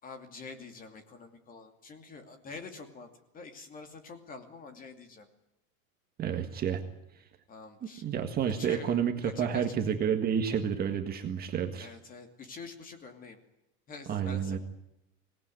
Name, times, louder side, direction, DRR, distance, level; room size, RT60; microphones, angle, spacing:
voice 1, 0.0-3.1 3.3-5.3 7.5-8.1 8.6-9.7 11.8-13.4 13.9-14.6, left 4 dB, 20° left, 6 dB, 2.7 m, -46 dB
voice 2, 6.2-6.8 8.0-11.9 14.1-14.6, right 8 dB, 20° right, 4 dB, 1.7 m, -30 dB
25.5 x 18.5 x 9.4 m, 0.91 s
supercardioid pair, 165°, 44 cm